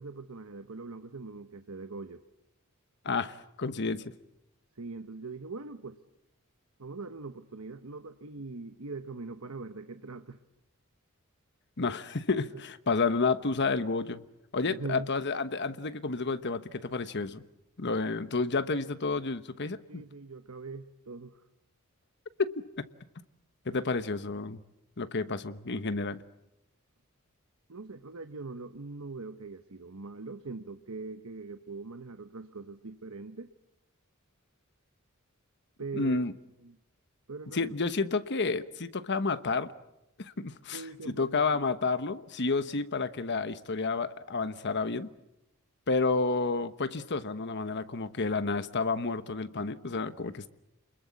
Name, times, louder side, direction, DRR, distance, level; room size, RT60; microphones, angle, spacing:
voice 1, 0.0-2.2 4.8-6.0 6.8-10.4 12.5-12.6 14.6-15.1 19.9-21.4 27.7-33.5 35.8-36.2 36.6-36.8 37.3-37.7 40.7-41.6, right 3 dB, 80° right, 9 dB, 1.1 m, -42 dB
voice 2, 3.0-4.1 11.8-14.2 14.5-17.4 17.8-20.0 22.4-22.8 23.6-24.6 25.0-26.2 35.9-36.3 37.5-39.7 40.2-40.8 41.1-45.1 45.9-50.5, left 4 dB, 55° left, 12 dB, 1.1 m, -30 dB
28.5 x 21.5 x 8.4 m, 0.89 s
head